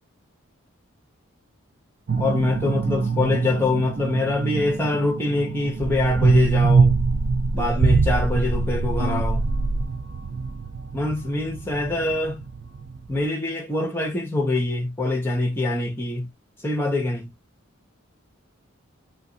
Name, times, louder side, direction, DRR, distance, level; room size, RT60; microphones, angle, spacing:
sound 1, 2.1-13.2, right 4 dB, 55° right, 0.4 m, -24 dB
voice 1, 2.2-7.0 7.5-9.5 10.9-12.4 13.1-16.3 16.6-17.3, left 2 dB, 10° left, 0.9 m, -24 dB
2.8 x 2.5 x 2.7 m
head